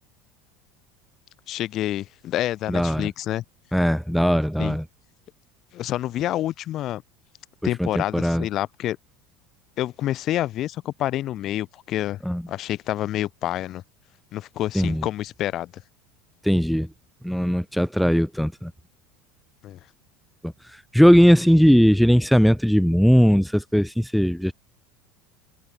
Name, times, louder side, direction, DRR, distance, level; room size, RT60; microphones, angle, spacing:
voice 1, 1.5-3.4 4.6-4.8 5.7-7.0 7.6-9.0 9.8-12.2 12.5-13.8 14.3-15.8 19.6-19.8, left 13 dB, 50° left, 1.2 m, -28 dB
voice 2, 2.7-3.1 3.7-4.8 7.8-7.9 8.1-8.5 12.3-12.4 14.7-15.0 16.4-16.9 17.2-18.7 20.4-20.5 20.9-24.5, equal, ahead, 0.5 m, -18 dB
supercardioid pair, 100°, 0 cm